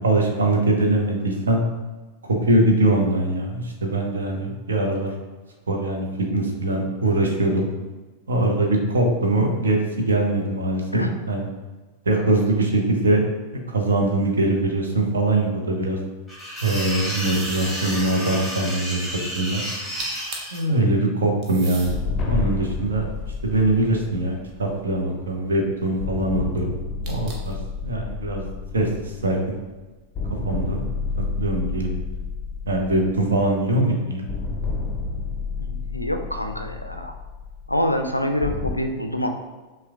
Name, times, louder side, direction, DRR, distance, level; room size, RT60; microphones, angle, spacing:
voice 1, 0.0-1.6 2.3-5.1 5.7-6.1 6.3-7.7 8.3-10.8 11.3-11.4 12.1-13.2 13.7-16.0 16.6-19.0 19.3-19.6 20.5-21.9 22.2-23.1 23.4-26.8 27.0-27.6 27.8-28.4 28.7-29.6 30.4-30.8 31.4-32.0 32.7-34.3, right 2 dB, 70° right, 1 dB, 0.7 m, -22 dB
sound 1, 16.3-20.6, equal, 10° right, 1.4 m, -31 dB
sound 2, 17.3-17.8 19.7-19.8 20.0-20.6 21.4-22.0 22.6-24.1 27.0-27.6, right 3 dB, 35° right, 0.7 m, -39 dB
sound 3, 21.9-25.4 26.0-29.8 30.1-33.8 34.3-38.7, left 4 dB, 30° left, 0.5 m, -30 dB
voice 2, 35.6-37.2 37.7-39.3, left 1 dB, 90° left, 5 dB, 0.3 m, -26 dB
5.7 x 2.2 x 2.4 m, 1.3 s
figure-of-eight pair, 90°, 0 cm